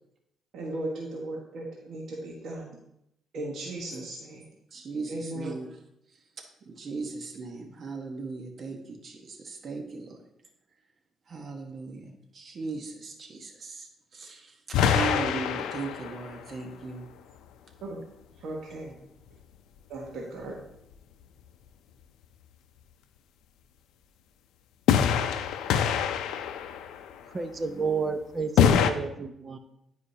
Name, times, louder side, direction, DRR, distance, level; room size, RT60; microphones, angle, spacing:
voice 1, 0.5-2.8 3.3-4.4 5.1-5.6 17.8-18.0 18.4-18.9 19.9-20.6, right 2 dB, 70° right, -2 dB, 1.3 m, -36 dB
voice 2, 4.7-5.7 6.7-10.2 11.3-13.9 14.1-17.0, right 3 dB, 50° right, 3 dB, 1.2 m, -37 dB
sound 1, 14.7-16.4 24.9-27.1 28.6-28.9, left 8 dB, 90° left, 0.4 m, -24 dB
voice 3, 27.3-29.6, right 5 dB, 35° right, 8 dB, 0.7 m, -31 dB
9.6 x 4.9 x 2.8 m, 0.80 s
cardioid pair, 90°, 0 cm